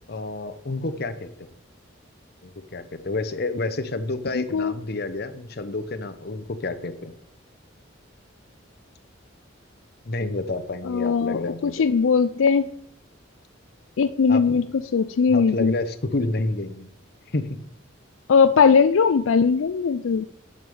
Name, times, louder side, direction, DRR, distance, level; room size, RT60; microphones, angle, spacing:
voice 1, 0.1-1.5 2.4-7.1 10.0-11.9 14.3-14.6 15.3-16.9 17.3-17.5, left 2 dB, 50° left, 11 dB, 0.9 m, -29 dB
voice 2, 4.3-4.7 10.8-12.7 14.0-14.7 14.9-15.7 18.3-20.3, left 5 dB, 85° left, 11 dB, 0.4 m, -19 dB
9.5 x 5.4 x 6.9 m, 0.69 s
head